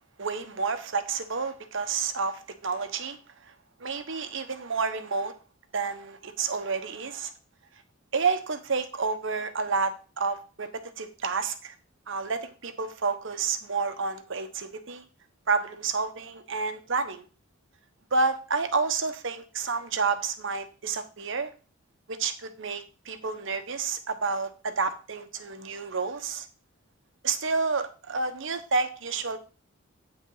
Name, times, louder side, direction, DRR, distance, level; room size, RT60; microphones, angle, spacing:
voice 1, 0.2-3.5 3.8-5.3 5.7-7.3 8.1-10.7 11.0-11.7 12.1-15.0 15.5-17.2 18.1-21.5 22.1-26.5 27.2-29.4, right 4 dB, 65° right, 1.0 m, -30 dB
8.9 x 6.0 x 3.9 m
head